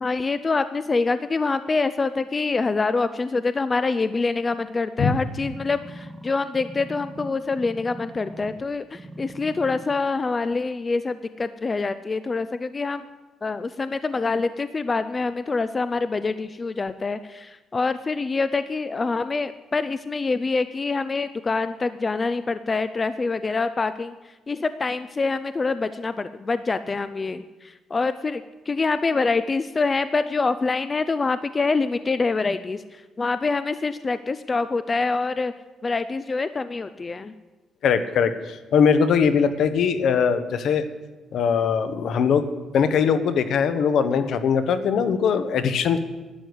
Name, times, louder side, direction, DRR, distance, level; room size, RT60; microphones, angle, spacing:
voice 1, 0.0-13.0 13.4-35.5 35.8-37.3, left 3 dB, 25° left, 13 dB, 0.4 m, -25 dB
sound 1, 5.5-8.6 8.9-9.9 10.5-10.6, right 1 dB, 10° right, 1.2 m, -41 dB
voice 2, 37.8-40.9 41.3-42.5 42.7-46.0, left 6 dB, 65° left, 11 dB, 1.1 m, -21 dB
12.0 x 10.0 x 8.0 m, 1.2 s
cardioid pair, 140°, 0 cm